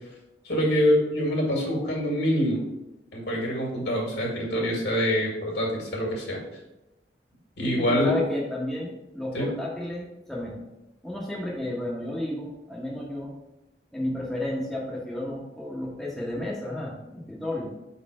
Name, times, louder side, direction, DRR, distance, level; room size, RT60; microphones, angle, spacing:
voice 1, 0.4-2.6 3.1-6.4 7.6-8.1 9.3-9.5, equal, 65° left, -1 dB, 2.0 m, -25 dB
voice 2, 7.8-10.6 11.0-13.3 13.9-17.7, left 1 dB, ahead, -5 dB, 0.9 m, -32 dB
5.2 x 4.1 x 4.8 m, 0.95 s
head